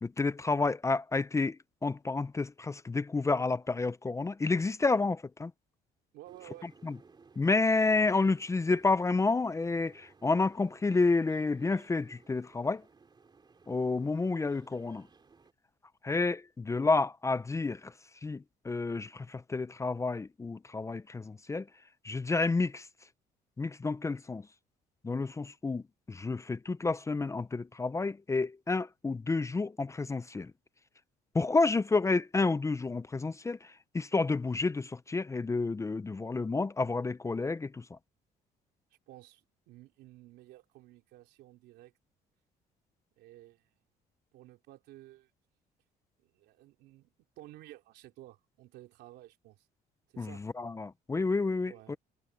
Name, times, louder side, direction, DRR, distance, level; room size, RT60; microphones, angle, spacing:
voice 1, 0.0-5.5 6.8-7.0 7.4-12.8 13.7-15.1 16.0-17.9 18.2-21.7 22.0-22.9 23.6-24.4 25.0-30.5 31.3-38.0 50.2-52.0, left 3 dB, 15° left, 0.6 m, -30 dB
voice 2, 6.1-6.7 39.1-41.9 43.2-43.8 44.3-45.3 46.2-49.7 50.1-50.4 51.7-52.0, right 16 dB, 85° right, 3.4 m, -53 dB
sound 1, 6.3-15.5, right 4 dB, 25° right, 3.4 m, -60 dB
cardioid pair, 110°, 17 cm